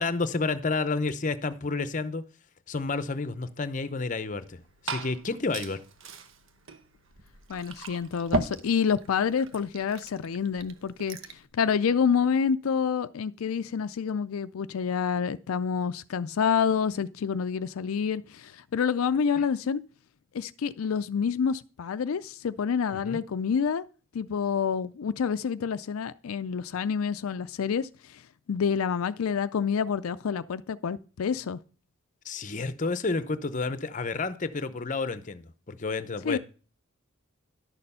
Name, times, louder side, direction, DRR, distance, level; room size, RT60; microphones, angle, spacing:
voice 1, 0.0-2.2 2.7-5.8 19.4-19.5 23.0-23.2 32.2-36.4, left 3 dB, 35° left, 0.7 m, -30 dB
Liquid, 4.4-11.5, right 2 dB, 65° right, 1.0 m, -37 dB
voice 2, 7.5-11.2 11.5-19.8 20.3-23.8 24.1-28.2 28.5-31.6 36.2-36.4, left 6 dB, 80° left, 0.4 m, -28 dB
11.5 x 6.6 x 5.5 m
head